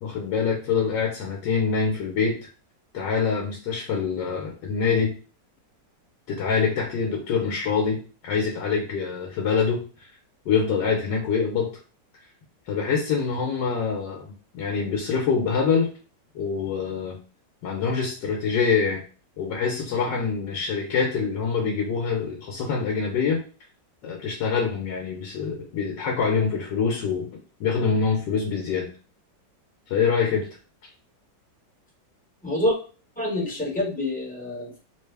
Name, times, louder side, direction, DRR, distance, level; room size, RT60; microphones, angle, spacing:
voice 1, 0.0-2.4 2.9-5.1 6.3-10.1 10.5-11.7 12.7-15.9 16.3-17.2 17.6-19.0 19.4-23.4 24.0-27.3 27.6-28.9 29.9-30.5, left 5 dB, 80° left, 0 dB, 1.4 m, -25 dB
voice 2, 32.4-32.8 33.2-34.8, left 1 dB, 5° left, -5 dB, 0.9 m, -26 dB
3.6 x 2.1 x 3.3 m, 0.36 s
omnidirectional pair, 1.9 m